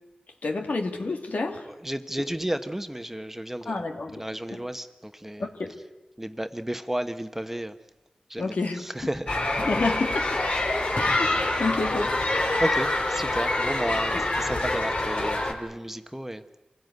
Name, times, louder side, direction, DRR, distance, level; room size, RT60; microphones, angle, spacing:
voice 1, 0.4-1.7 2.2-2.3 3.7-4.6 5.4-5.8 8.4-8.8 9.6-10.4 10.9-12.1 14.1-14.2, left 3 dB, 80° left, 4 dB, 2.2 m, -30 dB
voice 2, 1.7-5.5 6.2-7.8 8.3-9.4 12.6-16.6, right 1 dB, 10° right, 9 dB, 1.1 m, -32 dB
sound 1, 9.3-15.5, left 2 dB, 55° left, 3.1 m, -26 dB
25.5 x 16.0 x 9.4 m, 1.1 s
wide cardioid pair, 55°, 3 cm